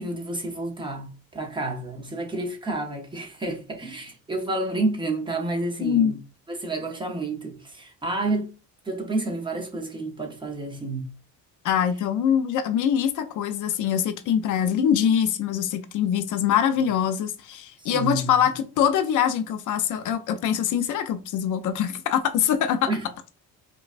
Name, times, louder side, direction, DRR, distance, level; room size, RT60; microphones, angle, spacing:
voice 1, 0.0-6.2 6.5-8.5 8.8-11.1 17.8-18.3 22.9-23.0, right 2 dB, 15° right, 0.7 m, -30 dB
voice 2, 5.8-6.1 11.6-22.9, left 9 dB, 60° left, 0.5 m, -23 dB
5.1 x 2.3 x 2.4 m
cardioid pair, 135°, 35 cm